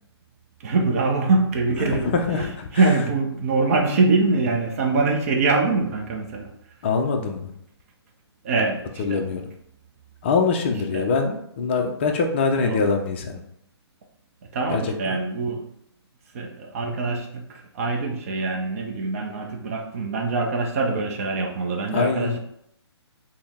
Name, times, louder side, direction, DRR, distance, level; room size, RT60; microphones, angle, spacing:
voice 1, 0.6-6.5 8.4-9.2 10.9-11.1 12.6-12.8 14.5-15.7 16.3-22.4, right 3 dB, 35° right, 1 dB, 0.5 m, -24 dB
voice 2, 1.8-2.7 6.8-7.5 9.0-9.4 10.2-13.4 14.7-15.2 21.9-22.4, left 4 dB, 25° left, 4 dB, 0.4 m, -24 dB
4.3 x 2.0 x 3.5 m, 0.74 s
hypercardioid pair, 160°, 14 cm